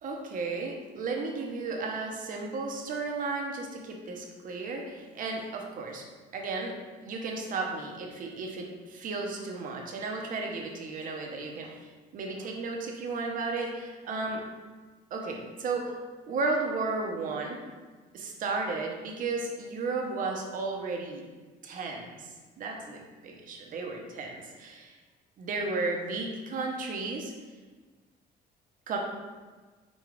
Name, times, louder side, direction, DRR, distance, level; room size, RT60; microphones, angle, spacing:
voice 1, 0.0-6.1 6.3-6.8 7.0-14.4 15.1-15.9 16.3-17.6 18.1-21.2 21.6-25.0 25.4-27.3 28.9-29.0, right 3 dB, 55° right, 1 dB, 0.7 m, -34 dB
5.2 x 2.3 x 3.1 m, 1.4 s
cardioid pair, 110°, 17 cm